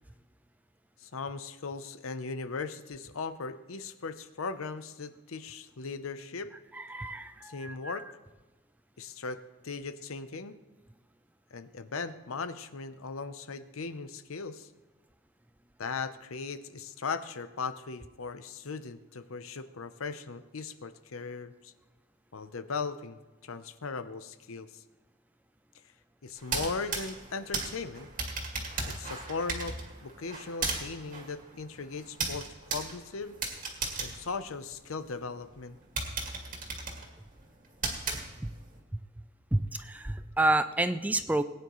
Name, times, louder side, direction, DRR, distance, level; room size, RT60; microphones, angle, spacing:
voice 1, 1.0-6.5 7.4-8.1 9.0-10.5 11.5-14.7 15.8-21.7 22.3-24.8 26.2-28.1 28.8-33.4 34.0-35.8, left 4 dB, 80° left, 12 dB, 0.7 m, -38 dB
voice 2, 6.7-8.1 38.4-38.5 39.5-41.4, right 2 dB, 10° right, 11 dB, 0.3 m, -29 dB
sound 1, 26.4-35.1 35.5-35.6 36.0-38.7, right 4 dB, 40° right, 2.0 m, -36 dB
19.5 x 9.5 x 3.1 m, 1.2 s
head